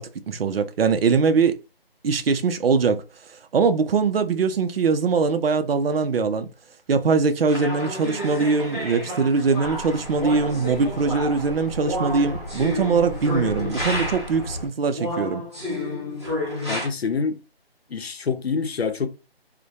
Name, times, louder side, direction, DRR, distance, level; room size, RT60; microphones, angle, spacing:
voice 1, 0.0-1.6 2.0-3.0 3.5-6.5 6.9-15.4, right 5 dB, 70° right, 0.5 m, -22 dB
sound 1, 7.5-14.4 14.9-16.9, left 1 dB, 30° right, 0.6 m, -31 dB
sound 2, 9.6-14.7, equal, 55° left, 1.0 m, -35 dB
voice 2, 16.7-17.4 17.9-19.1, left 5 dB, 85° left, 0.7 m, -26 dB
2.1 x 2.1 x 2.7 m
figure-of-eight pair, 180°, 30 cm